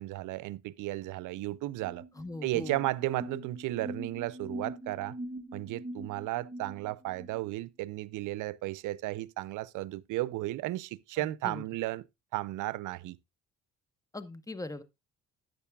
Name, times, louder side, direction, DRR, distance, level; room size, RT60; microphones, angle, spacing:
voice 1, 0.0-2.0 2.4-5.2 5.5-12.0 12.3-13.2, right 17 dB, 85° right, 0.5 m, -34 dB
sound 1, 1.7-7.4, right 1 dB, 25° right, 1.6 m, -43 dB
voice 2, 2.2-2.8 11.2-11.6 14.1-14.8, left 2 dB, 10° left, 1.0 m, -40 dB
12.5 x 9.0 x 2.3 m
cardioid pair, 90°, 30 cm